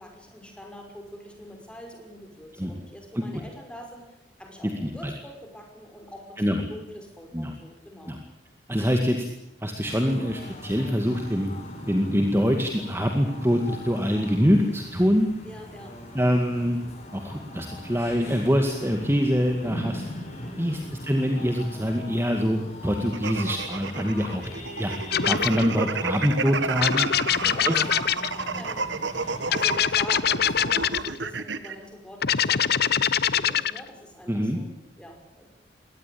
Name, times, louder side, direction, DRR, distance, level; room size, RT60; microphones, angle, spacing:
voice 1, 0.0-8.2 15.4-16.0 20.4-21.0 27.2-28.0 28.5-29.2 29.5-35.5, equal, 5° left, 2 dB, 5.8 m, -44 dB
voice 2, 8.7-9.3 9.6-11.5 11.9-15.3 16.1-16.8 17.1-20.0 20.6-24.5 24.8-24.9 25.3-27.1 27.6-27.8 34.3-34.6, equal, 15° right, 4 dB, 2.1 m, -24 dB
sound 1, 9.8-29.8, left 1 dB, 40° left, 7.1 m, -40 dB
sound 2, 23.1-31.7, right 4 dB, 90° right, 1.5 m, -31 dB
sound 3, 25.1-25.6 26.8-28.4 29.5-31.1 32.2-33.8, left 9 dB, 60° left, 0.8 m, -23 dB
23.0 x 18.5 x 8.7 m, 0.88 s
head